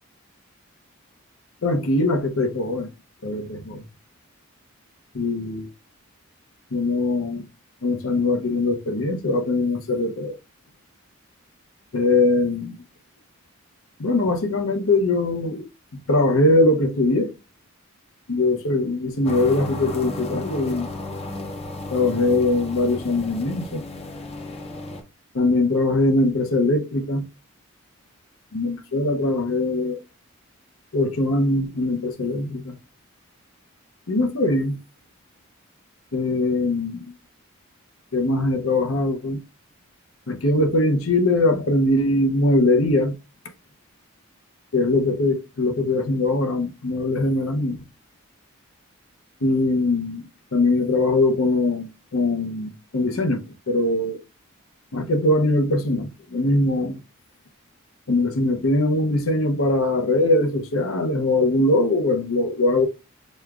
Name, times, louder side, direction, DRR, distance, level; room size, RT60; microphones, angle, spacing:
voice 1, 1.6-2.9 3.2-3.8 5.1-5.7 6.7-7.4 7.8-10.4 11.9-12.8 14.0-15.7 15.9-17.3 18.3-20.9 21.9-23.8 25.3-27.2 28.5-30.0 30.9-32.8 34.1-34.8 36.1-37.0 38.1-39.4 40.3-43.1 44.7-47.8 49.4-54.2 54.9-57.0 58.1-62.9, left 2 dB, 75° left, 0.8 m, -21 dB
sound 1, 19.2-25.0, left 2 dB, 30° left, 0.5 m, -33 dB
6.4 x 2.3 x 2.3 m
head